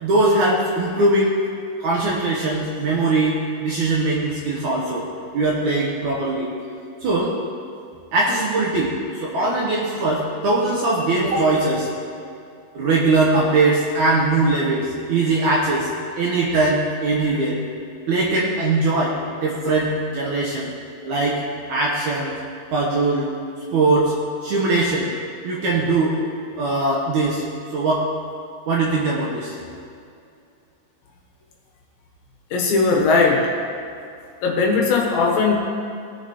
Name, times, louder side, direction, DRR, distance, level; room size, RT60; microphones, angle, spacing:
voice 1, 0.0-1.3 1.8-5.0 5.3-6.5 7.0-7.3 8.1-11.9 12.7-15.9 16.2-17.6 18.1-20.7 21.0-21.4 21.7-22.4 22.7-23.3 23.7-24.1 24.4-25.1 25.4-26.2 26.6-27.4 27.7-28.1 28.7-29.6, right 2 dB, 65° right, -4 dB, 2.0 m, -21 dB
voice 2, 32.5-33.5 34.4-35.6, left 4 dB, 70° left, 0 dB, 2.8 m, -18 dB
19.0 x 6.7 x 3.0 m, 2.5 s
omnidirectional pair, 4.5 m